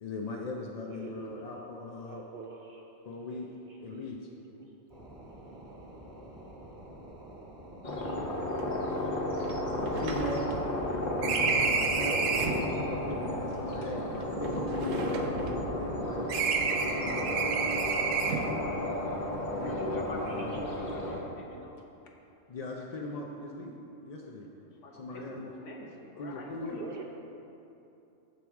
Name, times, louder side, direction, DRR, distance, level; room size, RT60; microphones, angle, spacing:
voice 1, 0.0-2.2 3.1-3.5 3.8-4.2 9.7-10.5 10.9-16.3 16.8-17.3 19.5-20.5 22.5-23.8 24.0-24.5 24.9-25.5 26.2-26.9, left 2 dB, 55° left, -1 dB, 0.4 m, -39 dB
voice 2, 0.9-1.4 2.1-2.8 3.9-4.0 4.6-4.7 26.8-27.0, right 5 dB, 60° right, 2 dB, 0.6 m, -44 dB
sound 1, 4.9-21.1, right 1 dB, 40° right, 1.2 m, -48 dB
sound 2, 7.8-21.2, left 1 dB, 40° left, 0.9 m, -33 dB
sound 3, 8.6-8.7 8.9-9.0 9.4-12.7 13.5-16.0 16.3-18.6, right 5 dB, 90° right, 1.0 m, -31 dB
voice 3, 19.6-21.8 24.6-27.0, left 1 dB, 70° left, 0 dB, 1.3 m, -44 dB
14.0 x 4.7 x 3.5 m, 2.8 s
omnidirectional pair, 1.3 m